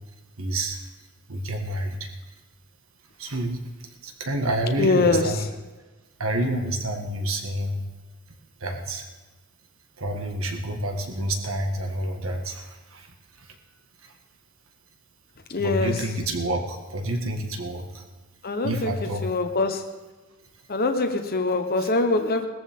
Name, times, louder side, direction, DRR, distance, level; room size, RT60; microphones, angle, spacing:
voice 1, 0.4-0.9 1.3-2.1 3.2-5.4 6.2-7.9 8.6-9.1 10.0-13.6 14.0-14.1 15.6-18.0 18.6-19.3, right 1 dB, 65° right, 3 dB, 1.8 m, -29 dB
voice 2, 4.8-5.5 15.5-16.0 18.4-18.9 19.2-19.8 20.7-22.5, left 3 dB, 45° left, 5 dB, 1.0 m, -23 dB
19.0 x 14.0 x 3.7 m, 1.2 s
head